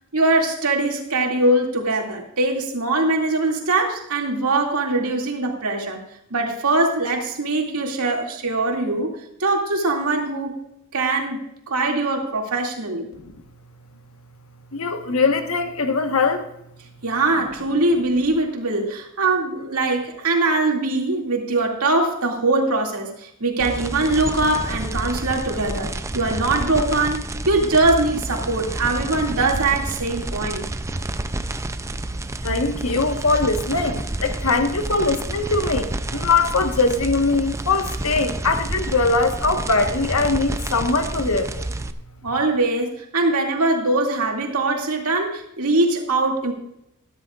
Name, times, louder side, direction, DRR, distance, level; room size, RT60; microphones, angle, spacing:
voice 1, 0.1-6.0 6.3-9.1 9.4-10.6 10.9-11.4 11.7-13.1 17.0-30.7 42.2-46.5, right 2 dB, 75° right, 1 dB, 2.4 m, -22 dB
voice 2, 14.7-16.5 32.4-41.6, left 3 dB, 65° left, 6 dB, 1.4 m, -21 dB
sound 1, 23.6-41.9, right 2 dB, 15° right, 0.5 m, -29 dB
13.5 x 13.5 x 2.5 m, 0.81 s
head